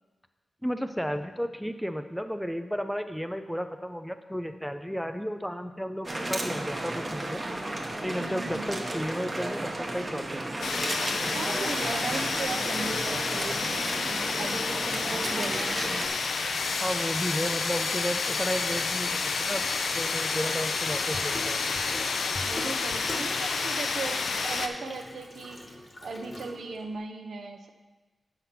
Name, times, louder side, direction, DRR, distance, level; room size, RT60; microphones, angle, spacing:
voice 1, 0.6-7.4 8.0-10.7 16.8-19.6 19.9-21.8, equal, ahead, 8 dB, 0.4 m, -33 dB
sound 1, 6.0-16.1, right 1 dB, 25° right, 1.0 m, -33 dB
voice 2, 8.1-8.6 11.3-15.8 22.4-27.7, right 3 dB, 75° right, 4 dB, 0.8 m, -37 dB
sound 2, 10.6-24.7, left 4 dB, 90° left, 0.6 m, -30 dB
Water tap faucet / Sink (filling or washing), 20.8-26.9, left 1 dB, 25° left, 1.2 m, -43 dB
8.2 x 5.8 x 5.9 m, 1.2 s
wide cardioid pair, 155°, 0 cm